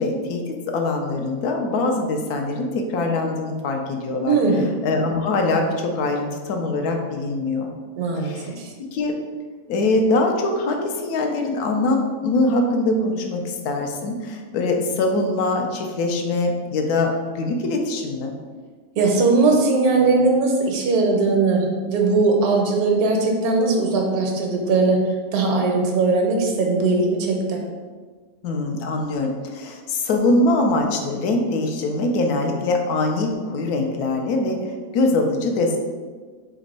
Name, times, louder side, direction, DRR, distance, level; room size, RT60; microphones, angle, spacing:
voice 1, 0.0-4.4 4.8-7.7 8.2-8.5 8.8-9.2 9.7-18.4 28.4-35.8, left 2 dB, 90° left, 3 dB, 1.1 m, -23 dB
voice 2, 4.3-4.6 8.0-8.7 19.0-25.0 25.3-27.6, right 3 dB, 80° right, 1 dB, 1.2 m, -19 dB
3.5 x 2.9 x 4.1 m, 1.5 s
omnidirectional pair, 1.6 m